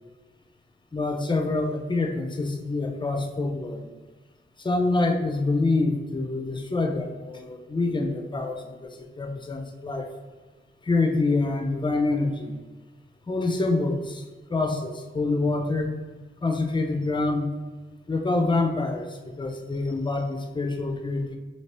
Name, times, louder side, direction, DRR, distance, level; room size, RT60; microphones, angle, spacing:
voice 1, 0.9-3.9 4.6-10.1 10.8-12.6 13.3-15.9 16.4-17.5 18.1-21.4, left 3 dB, 25° left, 4 dB, 0.5 m, -26 dB
4.2 x 2.9 x 3.3 m, 1.3 s
wide cardioid pair, 100°, 20 cm